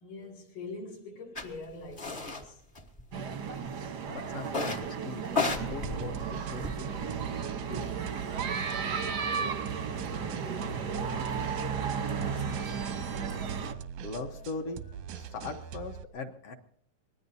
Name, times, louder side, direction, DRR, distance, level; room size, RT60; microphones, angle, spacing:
voice 1, 0.0-2.6 9.2-12.5 14.1-14.7 15.4-15.7, left 2 dB, 90° left, 4.1 m, -45 dB
sound 1, 1.3-1.5 2.0-2.4 2.7-3.5 4.5-4.9 5.2-7.1, left 3 dB, 35° left, 0.7 m, -33 dB
sound 2, 3.1-13.7, right 6 dB, 65° right, 1.0 m, -34 dB
voice 2, 4.1-5.2 5.5-7.2 7.7-8.2 14.0-14.8 15.1-16.5, left 3 dB, 60° left, 1.9 m, -40 dB
sound 3, 5.8-16.0, right 8 dB, 90° right, 2.3 m, -42 dB
24.0 x 19.5 x 2.8 m
omnidirectional pair, 3.4 m